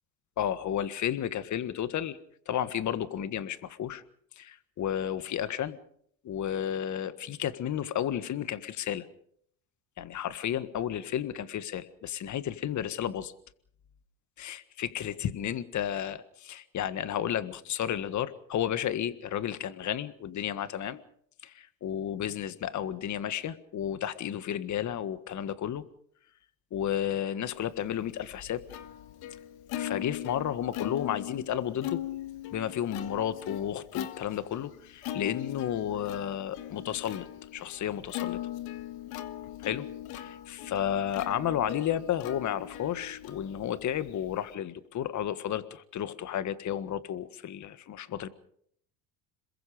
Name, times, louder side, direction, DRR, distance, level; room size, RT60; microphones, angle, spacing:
voice 1, 0.4-2.2 2.5-4.0 4.4-5.8 6.2-9.1 10.0-13.3 14.4-21.0 21.4-25.8 26.7-28.6 29.7-32.0 32.5-37.3 37.5-38.4 39.6-39.8 40.1-48.3, left 10 dB, 45° left, 13 dB, 1.7 m, -32 dB
Plucked string instrument, 27.8-44.5, left 12 dB, 65° left, 1.8 m, -40 dB
27.0 x 22.0 x 5.1 m, 0.66 s
supercardioid pair, 80°, 39 cm